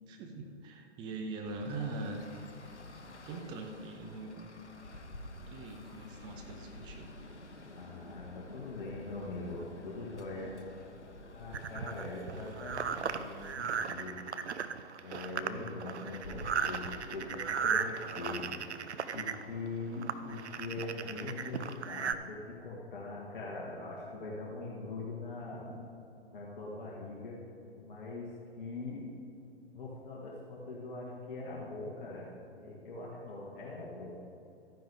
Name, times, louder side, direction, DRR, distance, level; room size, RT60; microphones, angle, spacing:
voice 1, 0.1-2.2 3.3-4.5 5.5-7.1 25.5-25.8, right 3 dB, 15° right, 3 dB, 0.5 m, -42 dB
Traffic noise roadway noise, 1.4-13.5, left 1 dB, 90° left, 0.9 m, -50 dB
voice 2, 7.8-10.6 11.3-14.2 15.0-18.5 19.1-25.6 26.3-27.4 27.8-28.3 28.6-29.1 29.7-34.2, left 3 dB, 50° left, -4 dB, 1.9 m, -42 dB
sound 1, 11.5-22.1, right 6 dB, 75° right, 0.7 m, -36 dB
sound 2, 16.2-18.4, equal, 75° left, 1.7 m, -49 dB
13.5 x 9.9 x 3.6 m, 2.8 s
figure-of-eight pair, 120°, 34 cm